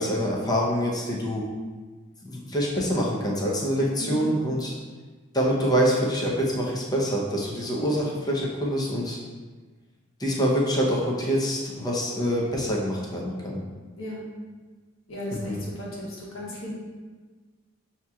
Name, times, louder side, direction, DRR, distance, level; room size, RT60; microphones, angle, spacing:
voice 1, 0.0-1.4 2.2-4.7 5.3-9.2 10.2-13.6 15.3-15.6, equal, 20° left, -3 dB, 0.7 m, -25 dB
voice 2, 15.1-16.7, left 1 dB, 75° left, -5 dB, 1.2 m, -35 dB
6.3 x 2.9 x 2.3 m, 1.4 s
head